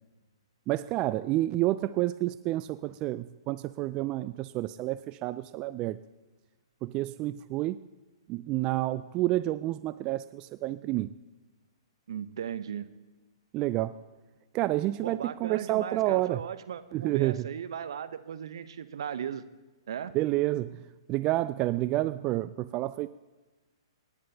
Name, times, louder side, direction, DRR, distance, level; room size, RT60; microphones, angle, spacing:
voice 1, 0.7-6.0 6.8-7.8 8.3-11.1 13.5-14.0 14.5-16.4 16.9-17.5 20.1-20.8 21.1-23.1, right 16 dB, 30° right, 15 dB, 0.3 m, -29 dB
voice 2, 12.1-12.9 15.0-19.5 19.9-20.1, right 8 dB, 65° right, 12 dB, 0.8 m, -37 dB
26.0 x 9.8 x 2.8 m, 1.2 s
hypercardioid pair, 125°, 3 cm